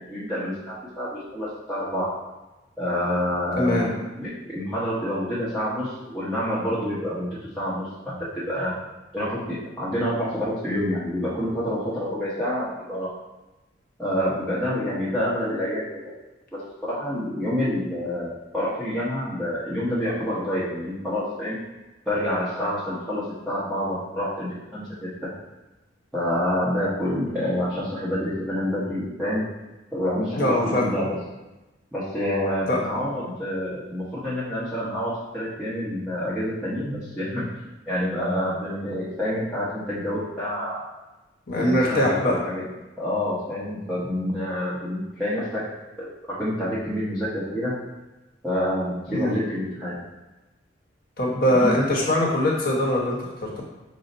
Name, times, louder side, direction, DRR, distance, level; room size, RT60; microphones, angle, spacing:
voice 1, 0.0-2.2 2.8-8.7 9.1-13.1 14.0-16.1 16.5-21.6 22.1-25.1 26.1-29.4 29.9-31.2 31.9-37.4 37.9-40.9 41.6-42.7 43.0-45.6 46.0-46.1 46.4-47.7 48.4-50.0 51.5-51.8, equal, 5° left, -12 dB, 0.8 m, -27 dB
voice 2, 3.6-3.9 30.3-30.9 32.7-32.8 41.5-42.3 49.1-49.3 51.2-53.6, left 1 dB, 55° left, -3 dB, 1.1 m, -22 dB
5.6 x 2.1 x 3.9 m, 1.1 s
head